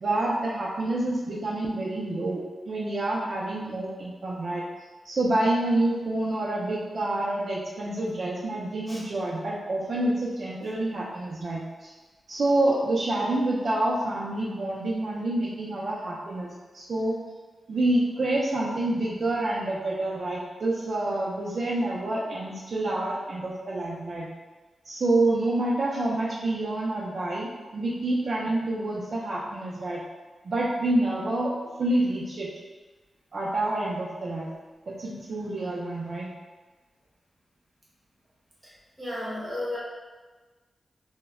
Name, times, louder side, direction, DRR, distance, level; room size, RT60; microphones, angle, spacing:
voice 1, 0.0-4.6 5.0-11.9 12.3-16.5 16.7-17.2 17.7-24.3 24.9-30.0 30.4-31.5 31.8-32.5 33.3-34.5 34.9-36.3, right 1 dB, 55° right, -4 dB, 0.4 m, -27 dB
voice 2, 39.0-39.8, left 1 dB, 10° right, -6 dB, 0.7 m, -33 dB
2.1 x 2.0 x 3.5 m, 1.3 s
wide cardioid pair, 130°, 0 cm